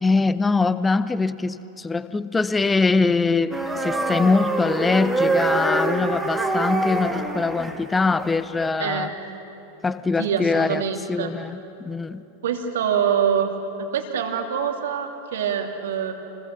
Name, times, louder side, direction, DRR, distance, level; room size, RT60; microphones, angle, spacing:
voice 1, 0.0-9.1 9.8-10.8 11.1-12.2, left 4 dB, 10° left, 0.8 m, -23 dB
sound 1, 3.5-8.7, right 2 dB, 5° right, 2.3 m, -25 dB
voice 2, 8.8-9.1 10.2-11.3 12.4-13.5 13.8-16.1, right 8 dB, 60° right, 2.5 m, -25 dB
29.0 x 21.0 x 6.9 m
figure-of-eight pair, 90°, 0 cm